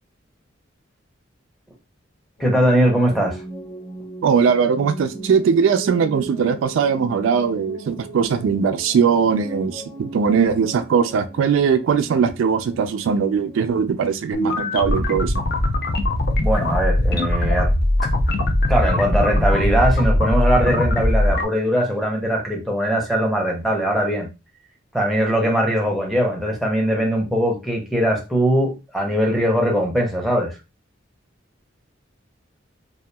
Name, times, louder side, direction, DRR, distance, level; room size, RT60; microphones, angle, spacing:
sound 1, 2.4-13.7, right 2 dB, 30° left, 1.0 m, -38 dB
voice 1, 2.4-3.4 16.4-17.7 18.0-18.1 18.7-24.3 24.9-30.6, equal, ahead, 0.6 m, -20 dB
voice 2, 4.2-15.4, right 6 dB, 85° right, 0.3 m, -20 dB
sound 2, 14.3-21.5, left 1 dB, 50° left, 0.4 m, -20 dB
2.8 x 2.2 x 2.2 m
head